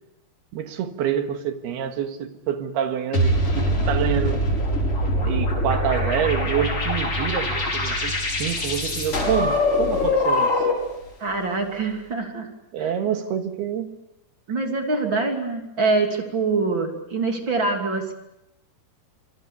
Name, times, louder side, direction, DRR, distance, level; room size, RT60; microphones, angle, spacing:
voice 1, 0.5-4.5 5.2-10.6 12.7-14.0 15.0-15.3, right 9 dB, 75° right, 7 dB, 3.6 m, -27 dB
sound 1, 3.1-11.0, left 1 dB, 35° left, 6.1 m, -23 dB
voice 2, 11.2-12.5 12.8-12.9 14.5-18.1, right 3 dB, 30° right, 3 dB, 3.2 m, -24 dB
26.5 x 23.5 x 7.1 m, 0.88 s
omnidirectional pair, 4.8 m